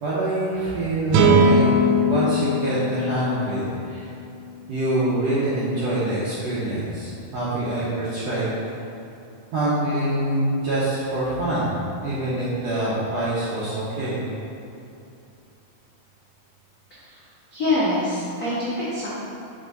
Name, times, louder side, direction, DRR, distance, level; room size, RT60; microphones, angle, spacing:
voice 1, 0.0-1.7 2.0-4.1 4.7-8.5 9.5-14.2, right 1 dB, 70° right, -9 dB, 1.6 m, -25 dB
sound 1, 1.1-4.4, equal, 85° right, 2.3 m, -20 dB
voice 2, 16.9-19.1, left 2 dB, 75° left, -12 dB, 0.8 m, -25 dB
6.1 x 4.9 x 3.9 m, 2.7 s
omnidirectional pair, 4.0 m